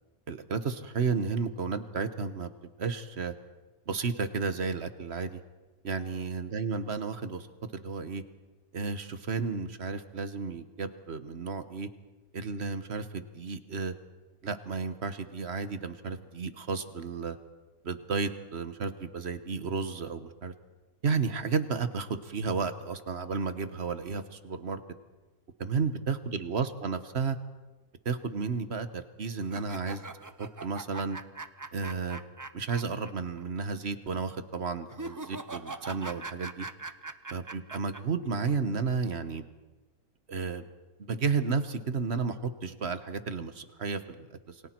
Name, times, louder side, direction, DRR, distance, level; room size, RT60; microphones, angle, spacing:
voice 1, 0.3-2.5 2.8-3.3 3.9-5.4 5.8-7.5 7.7-8.2 8.7-11.9 12.3-13.9 14.4-17.4 17.8-20.5 21.0-24.8 25.6-27.4 28.0-30.0 30.4-31.2 31.7-32.2 32.5-36.7 37.3-39.4 40.3-40.7 41.0-44.6, right 5 dB, 50° right, 10 dB, 1.4 m, -32 dB
Evil Laugh, 29.4-33.1 33.4-33.5 34.9-38.0, right 3 dB, 25° right, 0.4 m, -41 dB
28.0 x 23.5 x 4.6 m, 1.2 s
omnidirectional pair, 1.5 m